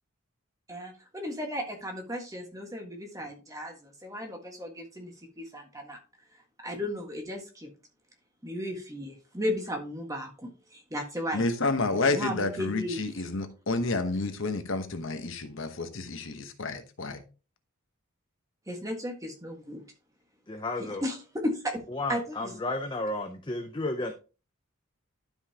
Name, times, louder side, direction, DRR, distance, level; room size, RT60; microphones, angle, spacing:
voice 1, 0.7-6.0 6.6-7.7 8.4-11.5 11.9-13.0 18.7-19.8 21.0-21.8 22.1-22.5, equal, 15° right, 1.5 m, -35 dB
voice 2, 11.3-17.2, left 3 dB, 60° left, 1.0 m, -30 dB
voice 3, 20.5-21.0 21.9-24.1, left 2 dB, 20° left, 0.6 m, -32 dB
12.0 x 5.4 x 2.9 m
head